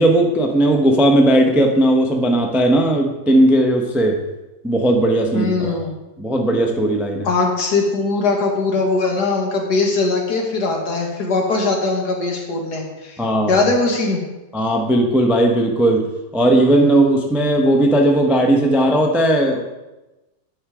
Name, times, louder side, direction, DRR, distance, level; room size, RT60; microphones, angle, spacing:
voice 1, 0.0-4.2 4.6-5.8 6.2-7.3 13.2-13.6 14.5-19.6, right 1 dB, ahead, 3 dB, 0.4 m, -16 dB
voice 2, 5.3-5.9 7.2-14.2, left 3 dB, 70° left, 1 dB, 2.0 m, -20 dB
9.5 x 5.7 x 4.9 m, 1.1 s
omnidirectional pair, 1.8 m